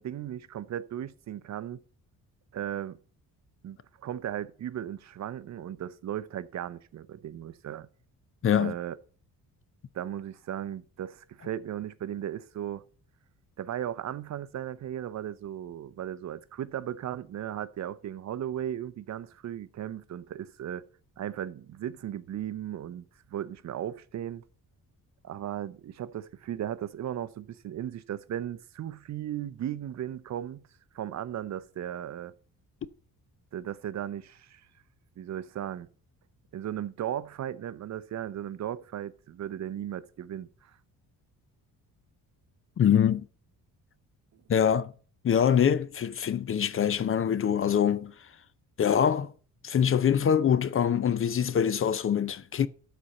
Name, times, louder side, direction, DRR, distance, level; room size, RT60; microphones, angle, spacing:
voice 1, 0.0-1.8 2.5-3.0 3.6-7.9 8.5-9.0 9.9-12.8 13.6-20.8 21.2-23.1 23.3-24.4 25.2-30.6 30.9-32.3 33.5-34.7 35.2-35.9 36.5-40.8, right 11 dB, 50° right, 0.7 m, -36 dB
voice 2, 8.4-8.7 42.8-43.2 44.5-44.9 45.2-48.1 48.8-49.3 49.6-52.7, left 8 dB, 40° left, 0.6 m, -24 dB
12.5 x 4.3 x 6.6 m
cardioid pair, 130°, 35 cm